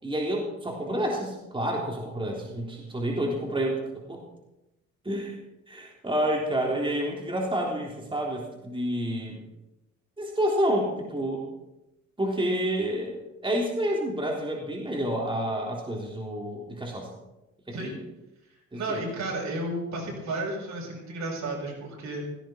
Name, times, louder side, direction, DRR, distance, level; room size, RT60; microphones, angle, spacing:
voice 1, 0.0-3.8 4.1-4.2 5.1-5.4 5.7-9.4 10.2-11.4 12.2-17.1 17.8-18.0 18.7-19.0, right 1 dB, 15° right, -1 dB, 3.6 m, -29 dB
voice 2, 18.7-22.2, right 2 dB, 65° right, -2 dB, 7.7 m, -32 dB
17.0 x 16.5 x 4.6 m, 0.93 s
cardioid pair, 90°, 30 cm